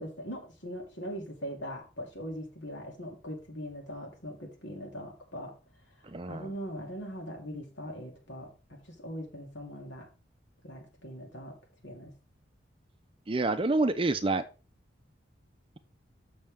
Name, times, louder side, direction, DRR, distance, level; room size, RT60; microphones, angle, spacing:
voice 1, 0.0-5.5 6.0-10.1 10.6-11.6 11.8-12.1, equal, 70° left, 1 dB, 2.6 m, -41 dB
voice 2, 6.0-6.5 13.3-14.4, right 2 dB, 25° right, 10 dB, 0.5 m, -28 dB
7.2 x 6.4 x 3.5 m, 0.32 s
head